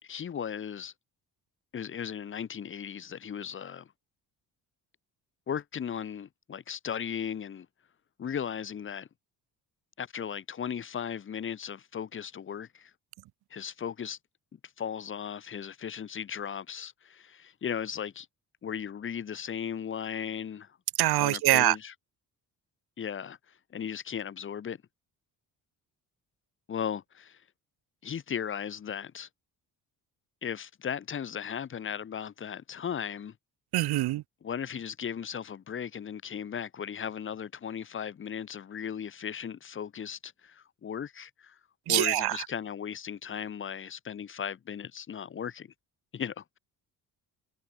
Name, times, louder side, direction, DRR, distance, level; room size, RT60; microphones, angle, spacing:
voice 1, 0.0-0.9 1.7-3.9 5.5-7.7 8.2-9.1 10.0-12.9 13.5-14.2 14.5-18.3 18.6-20.8 21.2-21.9 23.0-23.4 23.7-24.8 26.7-27.4 28.0-29.3 30.4-33.3 34.4-41.6 41.9-45.7 46.1-46.6, left 8 dB, 35° left, 1.5 m, -36 dB
voice 2, 21.0-21.7 33.7-34.2 41.9-42.4, right 16 dB, 85° right, 1.4 m, -24 dB
cardioid pair, 170°, 37 cm